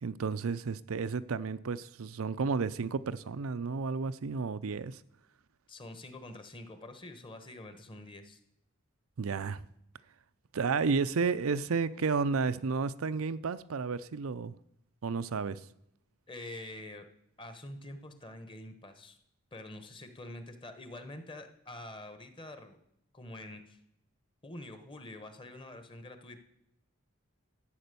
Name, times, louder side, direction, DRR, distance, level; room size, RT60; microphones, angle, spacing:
voice 1, 0.0-5.0 9.2-9.6 10.5-14.5 15.0-15.6, right 4 dB, 85° right, 0.5 m, -32 dB
voice 2, 5.7-8.4 16.3-17.1 17.4-19.2 19.5-22.8 23.1-23.8 24.4-26.4, left 1 dB, 25° left, 1.2 m, -46 dB
13.0 x 8.6 x 6.9 m
head